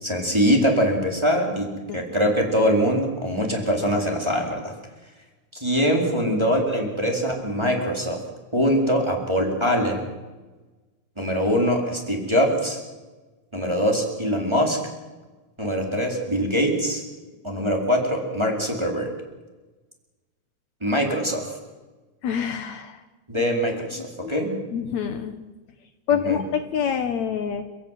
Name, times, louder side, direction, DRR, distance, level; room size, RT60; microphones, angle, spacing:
voice 1, 0.0-4.7 5.5-8.2 8.5-10.1 11.2-12.8 13.5-14.8 15.6-17.0 17.4-19.1 20.8-21.5 23.3-24.5 26.1-26.4, equal, 5° right, 0 dB, 3.7 m, -23 dB
voice 2, 22.2-23.0 24.0-24.3 24.7-25.3 26.1-27.6, left 7 dB, 85° left, 7 dB, 1.5 m, -26 dB
30.0 x 16.5 x 9.2 m, 1.2 s
omnidirectional pair, 5.1 m